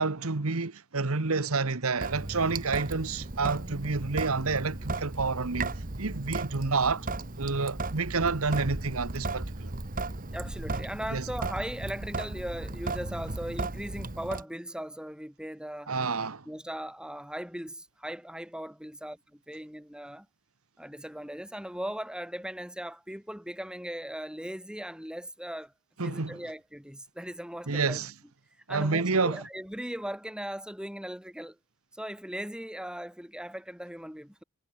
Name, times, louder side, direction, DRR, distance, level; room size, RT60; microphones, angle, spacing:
voice 1, 0.0-5.7 6.0-7.1 7.4-9.7 11.1-11.3 15.9-16.4 26.0-26.4 27.7-28.1 28.7-29.4, right 4 dB, 75° right, 1.3 m, -29 dB
Sink (filling or washing) / Drip, 2.0-14.4, right 2 dB, 40° right, 1.6 m, -35 dB
voice 2, 10.3-15.9 16.5-20.3 20.8-25.7 26.0-28.0 28.7-31.6 31.9-34.4, equal, 5° right, 4.0 m, -38 dB
head